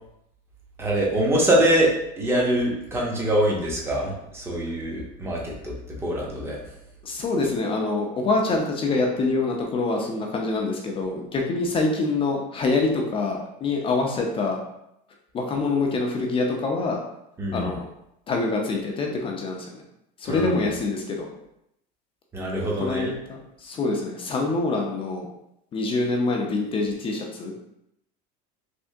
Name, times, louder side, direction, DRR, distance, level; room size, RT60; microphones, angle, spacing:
voice 1, 0.8-5.7 6.0-6.6 17.4-17.7 20.3-20.6 22.3-23.1, right 1 dB, 10° right, -3 dB, 0.8 m, -24 dB
voice 2, 7.0-14.6 15.3-17.0 17.5-17.9 18.3-19.8 20.2-21.3 22.8-25.3 25.7-27.5, left 3 dB, 25° left, 1 dB, 0.5 m, -25 dB
3.4 x 2.7 x 2.7 m, 0.79 s
supercardioid pair, 130°, 21 cm